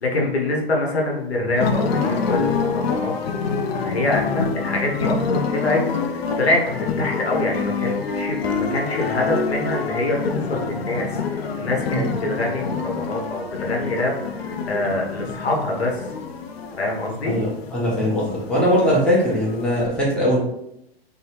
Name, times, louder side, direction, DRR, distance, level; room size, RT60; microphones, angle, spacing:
voice 1, 0.0-3.1 3.8-16.1 16.8-17.4, left 2 dB, 90° left, -1 dB, 0.9 m, -25 dB
sound 1, 1.5-19.9, left 5 dB, 70° left, 0.5 m, -27 dB
voice 2, 17.2-20.4, equal, 5° left, -7 dB, 0.9 m, -20 dB
3.3 x 2.2 x 2.9 m, 0.80 s
hypercardioid pair, 110°, 31 cm